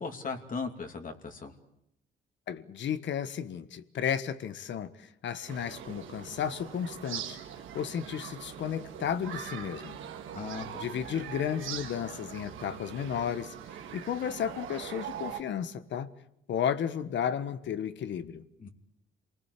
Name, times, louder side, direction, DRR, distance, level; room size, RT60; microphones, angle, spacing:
voice 1, 0.0-1.5 10.3-10.8 18.6-18.7, left 4 dB, 45° left, 4 dB, 2.8 m, -37 dB
voice 2, 2.5-7.4 7.7-10.0 10.8-13.5 13.9-16.1 16.5-18.4, left 8 dB, 65° left, 13 dB, 1.4 m, -33 dB
sound 1, 5.5-15.4, right 9 dB, 80° right, 2.2 m, -42 dB
28.0 x 20.0 x 8.4 m, 0.79 s
cardioid pair, 90°, 20 cm